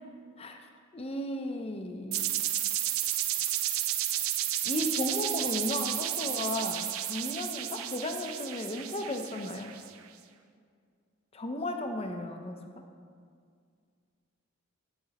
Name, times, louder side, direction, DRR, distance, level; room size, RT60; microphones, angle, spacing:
voice 1, 0.9-2.2 4.6-9.7 11.3-12.6, left 1 dB, 30° left, 5 dB, 0.5 m, -34 dB
sound 1, 2.1-9.9, right 12 dB, 85° right, 0.4 m, -32 dB
8.6 x 8.2 x 2.9 m, 2.2 s
head